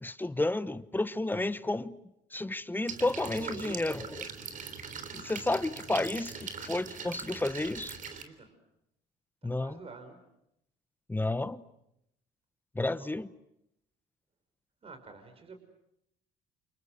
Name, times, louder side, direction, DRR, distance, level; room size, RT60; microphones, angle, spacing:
voice 1, 0.0-2.0 2.3-4.2 5.1-7.9 9.4-9.8 11.1-11.6 12.7-13.3, left 2 dB, 10° left, 1.2 m, -31 dB
sound 1, 2.9-8.2, right 6 dB, 50° right, 3.6 m, -41 dB
voice 2, 3.2-4.2 8.1-8.5 9.6-10.2 13.0-13.1 14.8-15.6, right 4 dB, 35° right, 5.5 m, -46 dB
29.5 x 28.0 x 6.7 m
cardioid pair, 105°, 17 cm